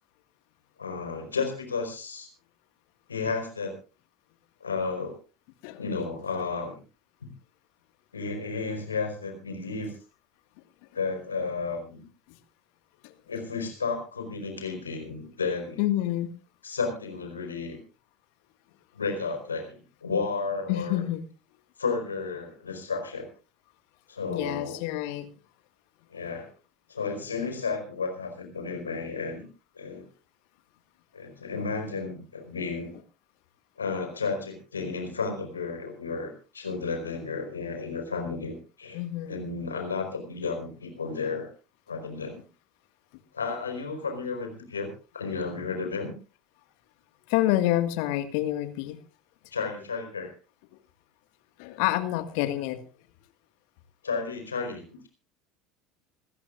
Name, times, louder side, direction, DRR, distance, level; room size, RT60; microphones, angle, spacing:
voice 1, 0.8-2.3 3.1-3.8 4.6-5.1 5.8-6.8 7.2-7.3 8.1-9.9 10.9-12.0 13.3-15.8 16.6-17.8 18.9-21.0 21.8-23.3 24.1-24.8 26.1-26.5 26.9-29.5 29.7-30.1 31.1-32.9 33.8-39.0 39.3-41.5 41.9-42.4 43.3-46.1 49.5-50.3 54.0-55.1, left 4 dB, 80° left, 4 dB, 4.7 m, -32 dB
voice 2, 15.8-16.3 20.7-21.2 24.3-25.3 38.9-39.5 47.3-49.0 51.6-52.8, left 14 dB, 55° left, 10 dB, 1.8 m, -28 dB
27.5 x 13.0 x 2.5 m, 0.32 s
figure-of-eight pair, 70°, 0 cm